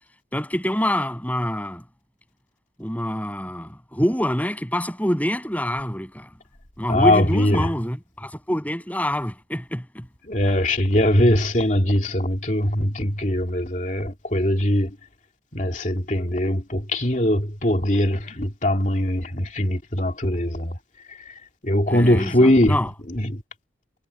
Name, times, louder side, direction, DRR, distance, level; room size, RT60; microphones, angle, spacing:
voice 1, 0.3-1.8 2.8-6.3 6.8-10.1 21.9-22.9, equal, 10° left, 7.0 m, -26 dB
voice 2, 6.9-7.7 10.2-15.0 15.5-20.8 21.1-23.4, left 1 dB, 40° left, 2.8 m, -21 dB
head